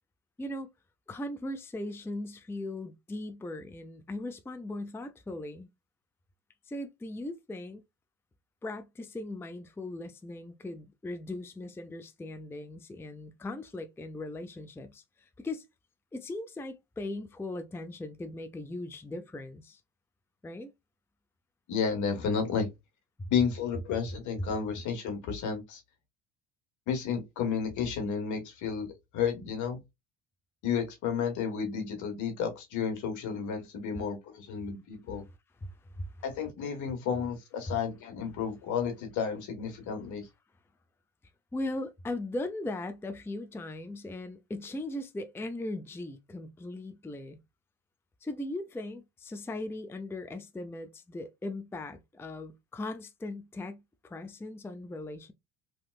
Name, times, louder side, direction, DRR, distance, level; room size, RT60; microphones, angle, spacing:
voice 1, 0.4-0.7 1.1-5.7 6.7-7.8 8.6-15.6 16.1-19.8 20.4-20.7 35.6-36.1 37.7-37.8 41.5-47.4 48.2-55.3, left 2 dB, 5° left, 0.5 m, -39 dB
voice 2, 21.7-22.7 23.3-25.8 26.9-28.9 29.1-29.8 30.6-35.2 36.2-40.3, left 6 dB, 60° left, 1.5 m, -32 dB
3.2 x 2.8 x 2.3 m
supercardioid pair, 80°, 33 cm